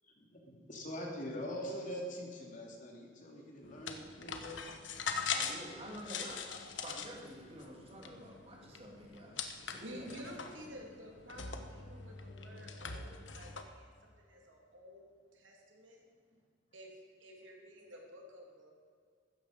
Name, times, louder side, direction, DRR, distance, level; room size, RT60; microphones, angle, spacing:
voice 1, 0.2-4.6, equal, 45° left, 0 dB, 3.0 m, -43 dB
sound 1, 3.6-13.6, left 6 dB, 75° left, 1.3 m, -42 dB
voice 2, 5.3-6.5 6.8-9.4 9.6-10.6, equal, 30° right, -1 dB, 3.2 m, -49 dB
voice 3, 9.8-16.0 16.7-18.7, equal, 85° right, 0 dB, 3.3 m, -52 dB
15.5 x 13.5 x 5.3 m, 2.1 s
head